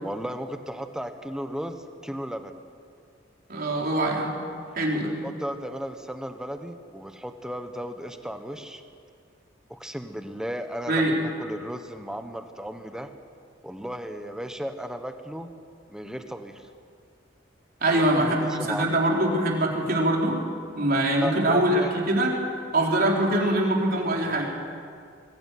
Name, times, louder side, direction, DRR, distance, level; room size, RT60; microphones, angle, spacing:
voice 1, 0.0-2.6 4.9-8.8 9.7-11.1 11.4-13.1 13.6-15.5 15.9-16.7 17.9-18.9 21.2-21.9, equal, 5° right, 7 dB, 1.2 m, -35 dB
voice 2, 3.5-4.3 4.7-5.1 10.9-11.2 17.8-20.4 20.8-22.4 22.7-24.5, right 1 dB, 50° right, -1 dB, 4.2 m, -23 dB
22.0 x 15.5 x 9.4 m, 2.2 s
head